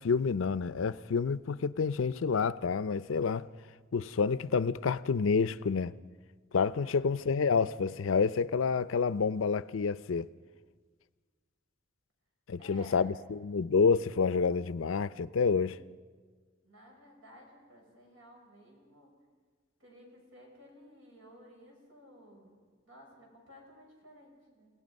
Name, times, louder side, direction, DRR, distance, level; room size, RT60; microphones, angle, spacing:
voice 1, 0.0-3.5 3.9-5.9 6.5-10.3 12.5-15.8, left 5 dB, 90° left, 0.5 m, -28 dB
voice 2, 12.6-13.1 16.6-19.1 19.8-24.7, equal, 85° right, 6.2 m, -55 dB
29.0 x 17.5 x 5.3 m
head